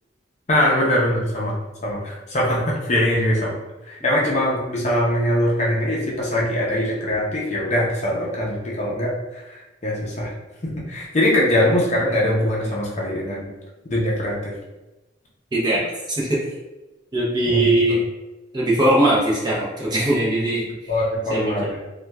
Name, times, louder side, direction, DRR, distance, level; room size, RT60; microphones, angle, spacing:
voice 1, 0.5-1.5 1.8-3.5 3.9-10.3 10.6-13.5 13.9-14.5 17.5-17.7 20.9-21.8, left 1 dB, 40° left, -4 dB, 0.5 m, -22 dB
voice 2, 15.5-16.5 17.1-18.0 18.5-20.9 21.3-21.7, right 1 dB, 25° right, -5 dB, 0.6 m, -21 dB
2.8 x 2.2 x 2.2 m, 1.0 s
head